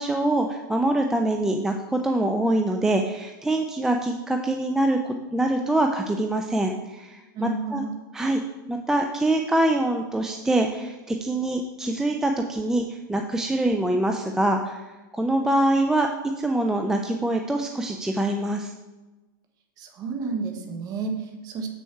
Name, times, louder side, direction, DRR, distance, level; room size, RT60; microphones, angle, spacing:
voice 1, 0.0-7.8 8.1-8.4 8.7-14.8 15.1-16.1 16.4-18.7, right 1 dB, 5° right, 4 dB, 0.4 m, -24 dB
voice 2, 7.3-7.9 19.8-21.7, right 4 dB, 35° right, 4 dB, 1.4 m, -31 dB
7.6 x 6.3 x 4.6 m, 1.1 s
supercardioid pair, 140°, 12 cm